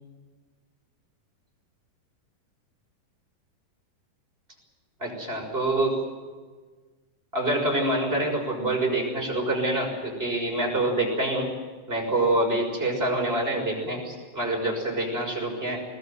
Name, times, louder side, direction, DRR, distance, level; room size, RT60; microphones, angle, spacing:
voice 1, 5.0-6.0 7.3-11.5 11.9-15.8, right 1 dB, 15° right, 1 dB, 6.3 m, -26 dB
22.0 x 20.0 x 9.3 m, 1.4 s
omnidirectional pair, 4.9 m